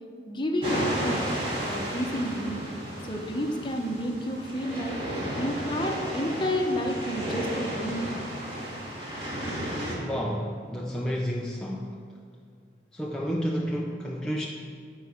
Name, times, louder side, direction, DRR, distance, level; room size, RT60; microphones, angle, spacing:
voice 1, 0.3-1.3 1.7-2.7 3.0-5.0 5.4-8.2, equal, 25° left, 2 dB, 0.9 m, -30 dB
sound 1, 0.6-9.9, right 1 dB, 30° right, 2.3 m, -33 dB
voice 2, 9.9-12.0 12.9-14.5, equal, 5° left, -3 dB, 0.5 m, -30 dB
10.5 x 4.8 x 7.3 m, 2.2 s
head